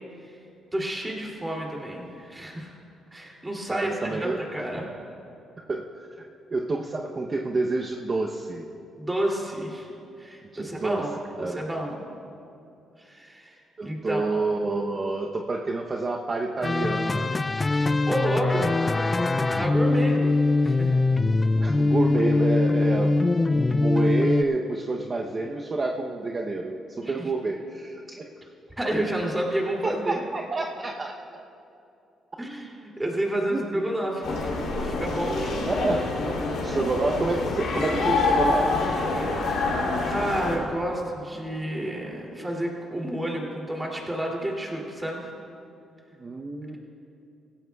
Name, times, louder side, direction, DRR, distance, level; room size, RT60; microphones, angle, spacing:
voice 1, 0.7-2.7 3.1-4.9 9.0-9.9 10.2-11.1 11.4-12.0 13.0-14.4 17.7-18.7 19.6-20.3 20.6-20.9 27.0-27.1 28.8-30.2 32.4-35.6 40.1-45.3, right 1 dB, 15° right, -1 dB, 2.8 m, -30 dB
voice 2, 3.7-4.5 5.7-5.9 6.2-8.7 10.5-11.0 11.4-11.6 13.8-17.3 18.5-18.8 19.8-20.1 21.5-23.2 23.5-28.2 29.8-31.4 33.5-33.8 35.7-36.1 36.6-38.7 46.2-46.8, right 3 dB, 35° right, 1 dB, 0.8 m, -28 dB
sound 1, 16.6-24.4, left 3 dB, 25° left, 0.4 m, -22 dB
sound 2, 34.2-40.6, left 3 dB, 75° left, 3.0 m, -26 dB
17.5 x 16.0 x 2.4 m, 2.7 s
cardioid pair, 90°, 0 cm